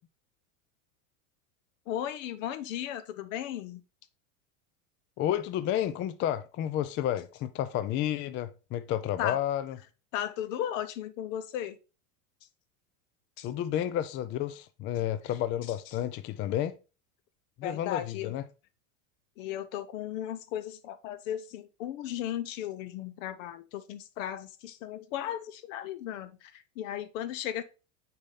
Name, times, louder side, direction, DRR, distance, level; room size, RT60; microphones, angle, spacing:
voice 1, 1.9-3.8 9.2-9.4 10.1-11.8 13.4-13.5 17.6-18.3 19.4-27.6, left 11 dB, 65° left, 0.7 m, -36 dB
voice 2, 5.2-9.8 13.4-16.7 17.6-18.4, left 11 dB, 30° left, 0.4 m, -31 dB
6.6 x 4.3 x 3.9 m
hypercardioid pair, 110°, 42 cm